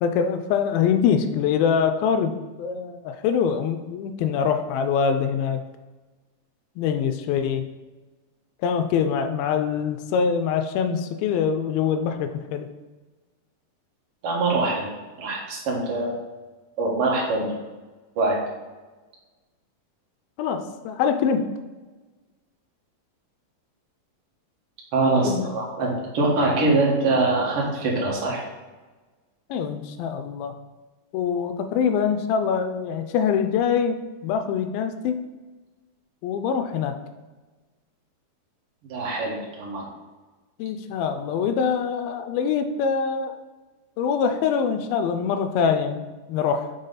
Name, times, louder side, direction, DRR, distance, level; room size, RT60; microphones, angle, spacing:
voice 1, 0.0-5.6 6.8-7.7 8.6-12.7 20.4-21.5 25.2-25.5 29.5-30.5 31.1-35.2 36.2-37.0 40.6-43.4 44.0-46.7, left 7 dB, 85° left, 8 dB, 2.3 m, -24 dB
voice 2, 14.2-14.9 15.2-16.1 16.8-17.6 18.2-18.4 24.9-28.4 38.8-39.9, right 2 dB, 50° right, -3 dB, 2.0 m, -23 dB
5.6 x 5.3 x 4.0 m, 1.2 s
omnidirectional pair, 4.3 m